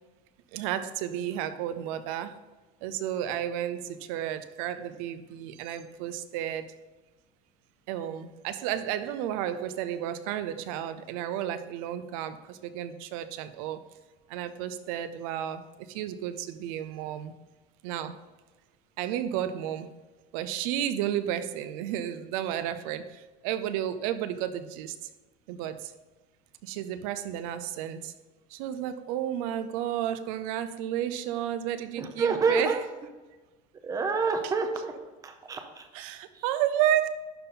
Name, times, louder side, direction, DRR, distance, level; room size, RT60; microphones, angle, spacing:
voice 1, 0.5-2.4 2.8-6.7 7.9-13.8 14.3-15.6 15.9-17.3 17.8-18.2 19.0-19.9 20.3-24.9 25.5-25.9 26.6-28.1 28.5-32.9 34.4-34.5 35.9-37.1, right 11 dB, 75° right, 12 dB, 0.7 m, -32 dB
voice 2, 31.9-32.8 33.8-34.9 35.2-35.9 36.3-36.4, right 4 dB, 20° right, 6 dB, 0.8 m, -28 dB
11.0 x 4.2 x 3.9 m, 1.2 s
cardioid pair, 160°, 18 cm